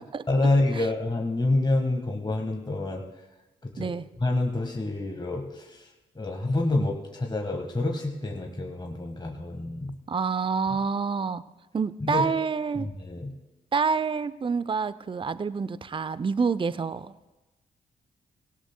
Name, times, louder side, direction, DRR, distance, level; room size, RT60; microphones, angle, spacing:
voice 1, 0.3-3.0 3.6-3.9 4.2-5.9 6.1-9.9 12.0-12.3 12.7-13.3, left 2 dB, 20° left, 2 dB, 1.5 m, -27 dB
voice 2, 10.1-11.4 11.7-12.9 13.7-17.3, right 5 dB, 25° right, 16 dB, 0.5 m, -27 dB
17.5 x 16.5 x 2.2 m, 1.1 s
hypercardioid pair, 40°, 21 cm